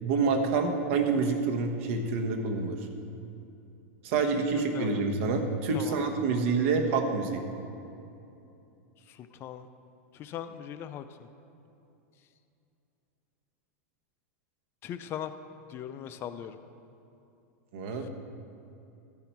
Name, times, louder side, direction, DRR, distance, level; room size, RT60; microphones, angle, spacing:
voice 1, 0.0-2.8 4.0-7.4 17.7-18.1, right 4 dB, 65° right, 4 dB, 1.2 m, -27 dB
voice 2, 4.5-5.0 5.7-6.0 9.1-9.7 10.1-11.3 14.8-15.3 15.7-16.6 17.9-18.1, left 10 dB, 30° left, 10 dB, 0.4 m, -39 dB
14.0 x 5.6 x 4.5 m, 2.7 s
supercardioid pair, 145°, 8 cm